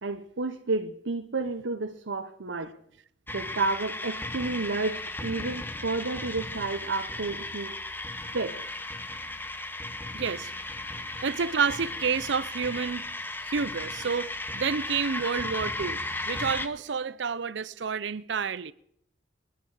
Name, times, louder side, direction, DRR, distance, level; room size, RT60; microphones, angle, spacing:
voice 1, 0.0-2.7 3.3-7.7 8.3-8.7, right 3 dB, 85° right, 1.0 m, -31 dB
sound 1, 3.3-16.7, left 2 dB, 10° left, 0.9 m, -35 dB
voice 2, 10.1-10.5 11.2-13.1 13.4-18.7, right 5 dB, 70° right, 0.6 m, -29 dB
28.5 x 10.0 x 4.9 m
head